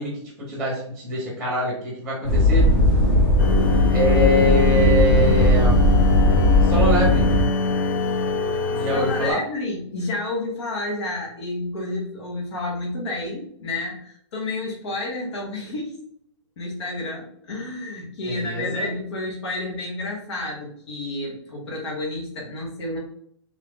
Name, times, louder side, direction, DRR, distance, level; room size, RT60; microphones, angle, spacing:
voice 1, 0.0-2.7 3.9-6.0 6.6-7.4 8.7-9.4 18.2-18.9, left 1 dB, ahead, -5 dB, 1.2 m, -24 dB
sound 1, 2.2-7.4, left 1 dB, 25° left, 1.0 m, -18 dB
sound 2, 3.4-9.3, left 3 dB, 45° left, 0.5 m, -23 dB
voice 2, 8.9-16.0 16.6-23.0, left 2 dB, 60° left, -2 dB, 1.4 m, -30 dB
3.3 x 2.8 x 3.7 m, 0.69 s
hypercardioid pair, 160°, 16 cm